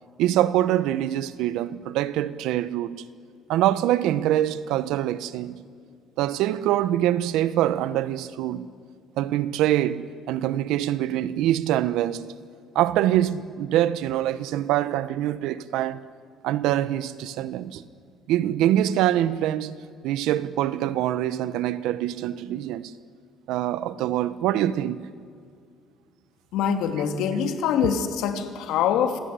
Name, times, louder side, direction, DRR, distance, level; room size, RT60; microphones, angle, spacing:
voice 1, 0.2-3.0 3.5-5.6 6.2-8.7 9.2-12.3 12.7-16.0 16.4-17.8 18.3-19.7 20.0-23.0 23.5-25.0, right 13 dB, 85° right, 1.0 m, -24 dB
voice 2, 26.5-29.2, left 8 dB, 80° left, 2.7 m, -24 dB
26.5 x 18.0 x 9.6 m
cardioid pair, 145°, 0 cm